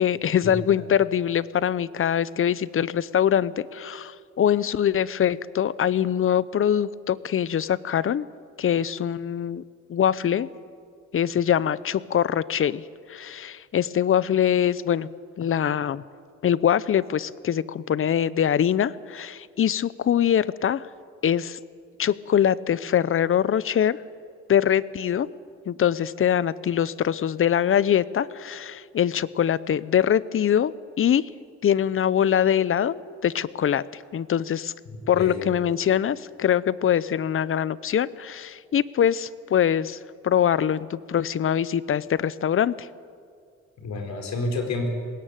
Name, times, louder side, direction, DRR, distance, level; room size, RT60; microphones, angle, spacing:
voice 1, 0.0-8.3 8.6-9.6 9.9-10.5 11.1-12.8 13.1-15.1 15.4-16.0 16.4-20.9 21.2-21.6 22.0-24.0 24.5-25.3 25.7-31.3 31.6-32.9 33.2-34.7 35.1-40.0 40.2-42.9, left 9 dB, 45° left, 19 dB, 0.7 m, -23 dB
voice 2, 34.9-35.5 43.8-44.9, left 3 dB, 65° left, 4 dB, 4.5 m, -29 dB
20.5 x 17.5 x 9.0 m, 2.2 s
cardioid pair, 90°, 30 cm